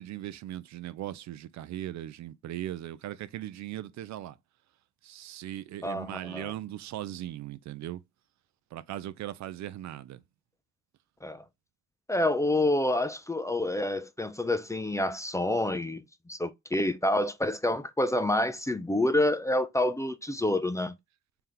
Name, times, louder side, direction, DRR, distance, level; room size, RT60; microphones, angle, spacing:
voice 1, 0.0-4.4 5.0-8.0 8.7-10.2, right 13 dB, 65° right, 0.5 m, -38 dB
voice 2, 5.8-6.5 11.2-11.4 12.1-16.0 16.3-20.9, left 1 dB, 10° left, 0.4 m, -28 dB
3.4 x 2.8 x 3.7 m
cardioid pair, 90°, 30 cm